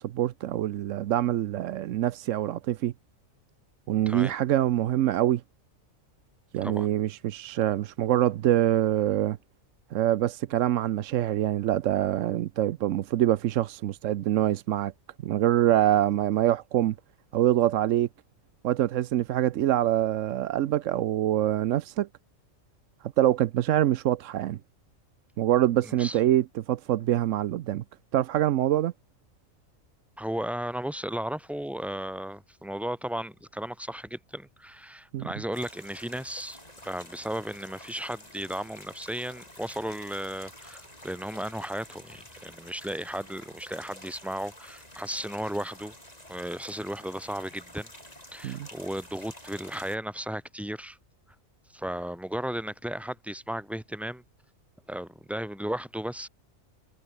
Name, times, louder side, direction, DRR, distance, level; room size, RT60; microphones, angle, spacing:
voice 1, 0.0-2.9 3.9-5.4 6.5-9.4 9.9-14.9 15.2-16.9 17.3-18.1 18.6-22.1 23.2-24.6 25.4-27.8 28.1-28.9 35.1-35.3 48.4-48.7, right 12 dB, 70° right, 1.0 m, -25 dB
voice 2, 25.8-26.2 30.2-36.6 36.8-45.9 46.3-47.9 48.3-51.0 51.7-54.2 54.9-56.3, equal, ahead, 2.5 m, -35 dB
sound 1, 35.5-50.0, left 1 dB, 30° left, 7.2 m, -49 dB
omnidirectional pair, 1.4 m